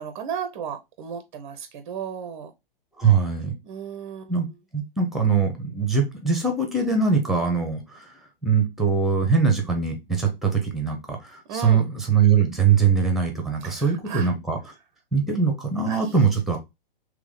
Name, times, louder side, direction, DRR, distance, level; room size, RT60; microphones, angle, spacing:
voice 1, 0.0-2.5 3.6-4.4 11.5-11.9 13.6-14.3 15.9-16.1, right 8 dB, 30° right, 0.5 m, -34 dB
voice 2, 3.0-3.5 4.3-4.5 4.7-8.1 8.4-14.6 15.1-16.6, right 6 dB, ahead, 0.8 m, -22 dB
3.6 x 3.1 x 3.4 m
figure-of-eight pair, 115°, 29 cm